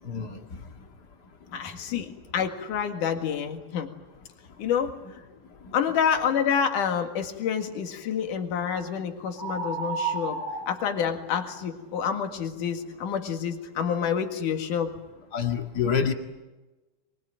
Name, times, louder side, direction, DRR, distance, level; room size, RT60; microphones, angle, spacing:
voice 1, 0.0-0.4 15.3-16.1, left 7 dB, 35° left, 4 dB, 1.9 m, -26 dB
voice 2, 1.5-3.9 4.6-5.0 5.7-10.4 10.7-14.9, left 7 dB, 70° left, 5 dB, 3.4 m, -28 dB
sound 1, 8.6-8.9 9.4-11.4, right 4 dB, 90° right, 8.4 m, -33 dB
24.0 x 22.5 x 9.1 m, 1.1 s
omnidirectional pair, 3.9 m